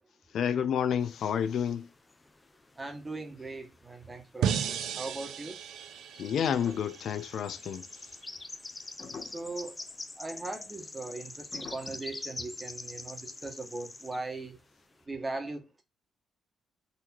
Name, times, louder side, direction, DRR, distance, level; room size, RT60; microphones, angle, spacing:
voice 1, 0.3-1.9 6.2-7.8, left 8 dB, 65° left, 0.6 m, -29 dB
sound 1, 1.1-2.7 3.0-4.2 4.5-4.7 5.4-14.2, left 2 dB, 20° left, 0.6 m, -44 dB
voice 2, 2.7-5.6 9.2-9.8 10.2-14.6 15.0-15.8, right 2 dB, 20° right, 1.4 m, -39 dB
sound 2, 4.4-7.5, right 8 dB, 80° right, 0.6 m, -34 dB
sound 3, 6.5-7.8 8.6-8.7 9.0-9.6 10.4-10.5 11.5-11.9, left 4 dB, 45° left, 1.2 m, -46 dB
4.1 x 2.9 x 4.3 m
cardioid pair, 90°, 0 cm